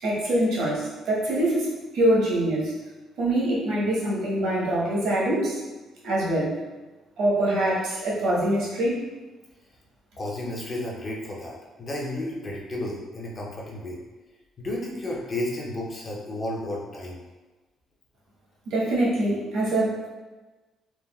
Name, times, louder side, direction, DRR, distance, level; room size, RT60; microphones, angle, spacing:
voice 1, 0.0-2.8 3.2-5.6 6.0-6.5 7.2-9.0 18.7-20.1, right 1 dB, 65° right, -5 dB, 0.9 m, -24 dB
voice 2, 10.2-14.0 14.6-17.2, left 1 dB, 25° left, -3 dB, 0.5 m, -32 dB
3.3 x 2.2 x 2.2 m, 1.2 s
cardioid pair, 160°, 0 cm